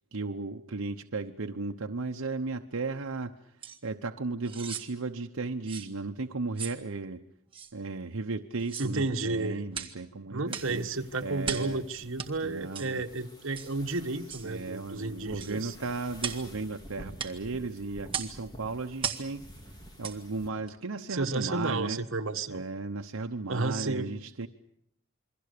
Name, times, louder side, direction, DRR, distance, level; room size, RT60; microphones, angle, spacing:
voice 1, 0.1-3.4 3.8-7.2 7.7-10.8 11.2-11.8 12.4-13.0 14.4-19.4 20.0-22.0 22.5-24.5, right 3 dB, 85° right, 4 dB, 0.9 m, -35 dB
sound 1, 3.6-3.8 4.4-4.9 5.7-5.9 6.6-6.8 7.5-7.7 8.6-8.9 9.7-10.0 10.5-10.7 11.4-11.7 12.2-12.3 12.7-12.9 13.5-13.7 14.3-14.5 15.4-15.6 16.2-16.5 17.2-17.4 18.1-18.4 19.0-19.3 20.0-20.2 20.7-20.8, right 7 dB, 25° right, 1.8 m, -36 dB
voice 2, 8.8-9.6 10.3-15.7 21.1-22.6 23.5-24.1, right 3 dB, 70° right, 5 dB, 1.5 m, -32 dB
sound 2, 10.5-20.5, equal, 20° left, 3.1 m, -50 dB
28.0 x 23.0 x 6.8 m, 0.73 s
head